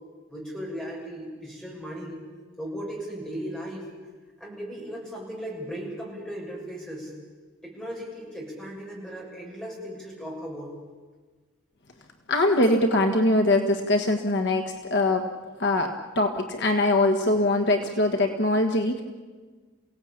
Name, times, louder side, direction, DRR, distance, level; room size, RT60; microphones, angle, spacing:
voice 1, 0.3-2.2 2.6-3.9 4.4-7.1 7.6-10.8, equal, 5° left, -3 dB, 7.1 m, -37 dB
voice 2, 12.3-15.3 15.6-19.0, left 2 dB, 55° left, 4 dB, 1.6 m, -22 dB
28.5 x 17.0 x 8.9 m, 1.4 s
head